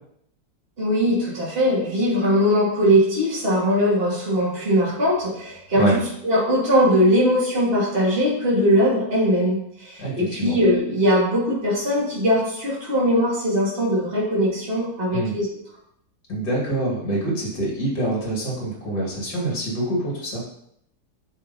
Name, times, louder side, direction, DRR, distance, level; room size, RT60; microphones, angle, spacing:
voice 1, 0.8-15.5, equal, 30° right, -6 dB, 2.8 m, -20 dB
voice 2, 10.0-10.6 15.1-15.3 16.3-20.4, right 1 dB, 60° left, -3 dB, 3.3 m, -25 dB
8.6 x 5.7 x 4.2 m, 0.72 s
omnidirectional pair, 2.0 m